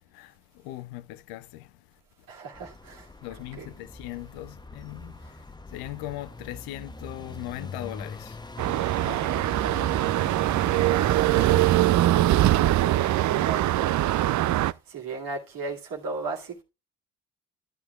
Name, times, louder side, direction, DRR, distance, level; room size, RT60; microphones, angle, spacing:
voice 1, 0.0-2.0 3.2-8.7, left 15 dB, 85° left, 0.5 m, -40 dB
voice 2, 2.3-3.7 9.0-13.9 14.2-16.6, right 4 dB, 75° right, 2.2 m, -38 dB
sound 1, 2.5-12.3, left 2 dB, 10° left, 0.7 m, -43 dB
sound 2, 8.6-14.7, right 14 dB, 55° right, 0.5 m, -22 dB
13.5 x 9.7 x 2.3 m
hypercardioid pair, 45°, 35 cm